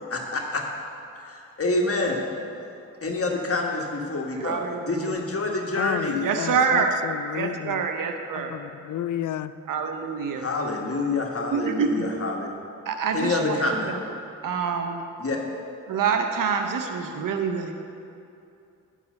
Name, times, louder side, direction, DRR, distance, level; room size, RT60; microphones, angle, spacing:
voice 1, 0.1-0.6 1.1-2.2 3.0-4.6 4.9-6.2 10.3-12.5 13.1-13.9 15.2-15.4, left 2 dB, 45° left, 0 dB, 1.6 m, -27 dB
voice 2, 4.4-5.2 6.2-6.9 7.3-8.5 9.7-10.5 11.5-12.1 12.9-13.6 13.9-14.0 14.4-15.1 15.9-17.7, right 6 dB, 85° right, 5 dB, 0.7 m, -26 dB
voice 3, 5.8-7.9 8.4-9.5, left 10 dB, 70° left, 14 dB, 0.4 m, -31 dB
10.5 x 4.9 x 6.7 m, 2.6 s
cardioid pair, 45°, 32 cm